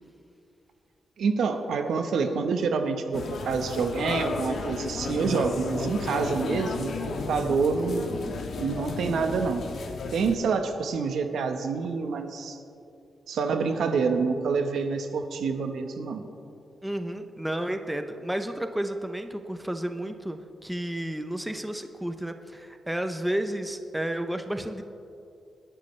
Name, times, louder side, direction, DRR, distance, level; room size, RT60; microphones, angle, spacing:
voice 1, 1.2-9.7 10.1-12.6 13.3-16.2, right 5 dB, 80° right, 6 dB, 1.1 m, -27 dB
sound 1, 3.1-10.4, left 4 dB, 65° left, 1.3 m, -33 dB
voice 2, 16.8-24.8, right 1 dB, 5° right, 7 dB, 0.6 m, -32 dB
28.0 x 11.0 x 3.3 m, 2.7 s
wide cardioid pair, 165°, 0 cm